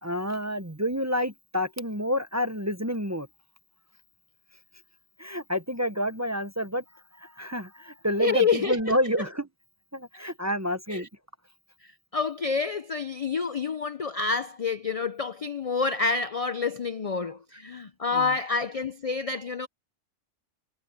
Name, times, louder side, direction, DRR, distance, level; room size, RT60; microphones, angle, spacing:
voice 1, 0.0-3.3 5.2-6.8 7.2-9.5 9.9-11.1 18.1-18.3, equal, 15° right, 0.7 m, -29 dB
voice 2, 8.2-8.8 10.9-11.1 12.1-19.7, left 5 dB, 45° left, 0.4 m, -28 dB
omnidirectional pair, 1.3 m